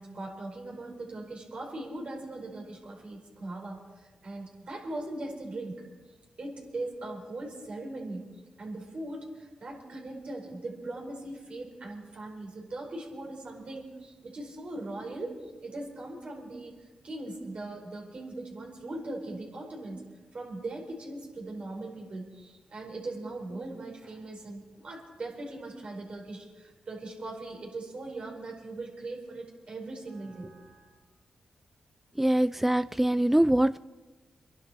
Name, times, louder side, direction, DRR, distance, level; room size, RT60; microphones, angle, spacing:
voice 1, 0.0-5.8 6.4-8.3 8.6-16.7 17.0-20.0 20.3-31.0, right 2 dB, 60° right, 0 dB, 4.6 m, -40 dB
voice 2, 32.2-33.8, right 1 dB, 10° right, 14 dB, 0.4 m, -23 dB
25.0 x 11.5 x 4.3 m, 1.2 s
supercardioid pair, 50°, 2 cm